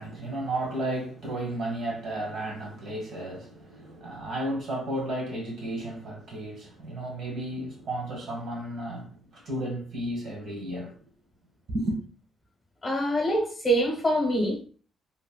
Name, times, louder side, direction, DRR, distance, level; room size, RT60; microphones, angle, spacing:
voice 1, 0.0-11.0 11.7-12.0, right 1 dB, 70° right, 1.4 m, -33 dB
voice 2, 12.8-14.6, right 1 dB, 20° left, 0.9 m, -25 dB
3.2 x 2.5 x 2.3 m
cardioid pair, 90°, 0 cm